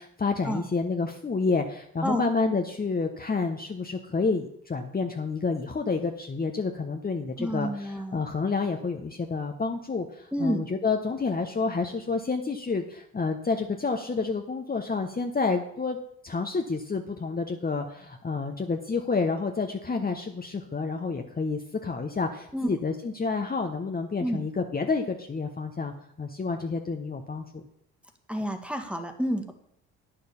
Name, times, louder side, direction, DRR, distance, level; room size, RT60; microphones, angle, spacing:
voice 1, 0.0-16.0 16.2-25.9 26.2-27.6, left 4 dB, 25° left, 4 dB, 1.1 m, -29 dB
voice 2, 7.4-8.2 10.3-10.6 22.5-22.8 24.2-24.5 28.3-29.5, equal, 5° right, 6 dB, 1.9 m, -29 dB
9.2 x 6.9 x 7.1 m, 0.73 s
hypercardioid pair, 60°, 39 cm